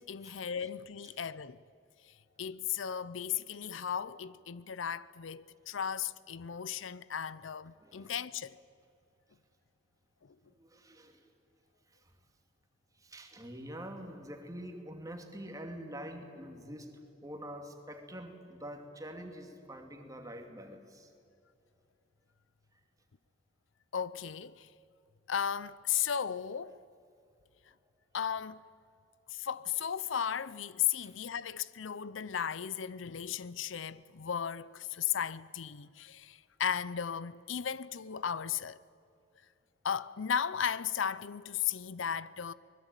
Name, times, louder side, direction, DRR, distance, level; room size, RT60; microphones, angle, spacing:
voice 1, 0.0-1.6 2.0-8.6 10.2-10.3 23.9-24.7 25.3-26.8 28.1-28.6 29.3-38.8 39.8-42.5, left 8 dB, 80° left, 0.6 m, -35 dB
voice 2, 7.8-8.2 10.5-11.3 11.9-12.1 12.9-16.9 17.2-21.1 22.7-22.8 30.9-31.2, equal, 20° right, 2.5 m, -46 dB
24.0 x 21.0 x 9.1 m
head